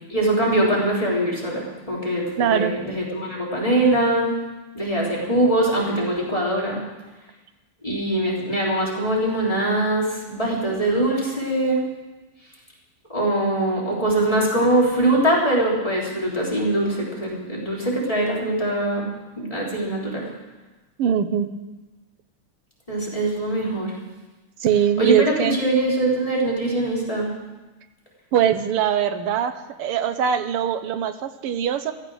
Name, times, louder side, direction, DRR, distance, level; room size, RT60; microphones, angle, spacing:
voice 1, 0.1-4.3 4.7-6.8 7.8-11.8 13.1-19.1 19.4-20.3 22.9-23.9 25.0-27.3, right 1 dB, 15° left, -5 dB, 3.6 m, -22 dB
voice 2, 2.4-2.8 21.0-21.5 24.6-25.6 28.3-31.9, right 9 dB, 85° right, 10 dB, 1.9 m, -22 dB
15.5 x 13.5 x 6.3 m, 1.2 s
omnidirectional pair, 2.4 m